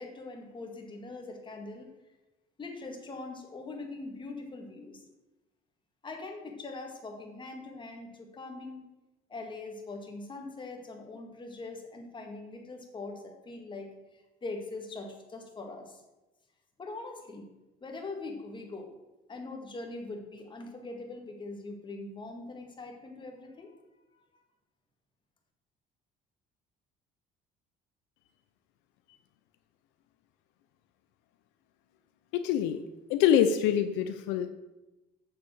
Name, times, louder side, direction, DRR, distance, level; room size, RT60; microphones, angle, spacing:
voice 1, 0.0-1.9 2.6-5.0 6.0-8.9 9.3-13.9 14.4-16.0 16.8-17.5 17.8-18.9 19.3-23.7, left 3 dB, 25° left, 3 dB, 1.9 m, -42 dB
voice 2, 32.3-32.8 33.1-34.5, left 9 dB, 90° left, 10 dB, 0.6 m, -25 dB
7.2 x 7.0 x 6.4 m, 1.1 s
cardioid pair, 115°, 18 cm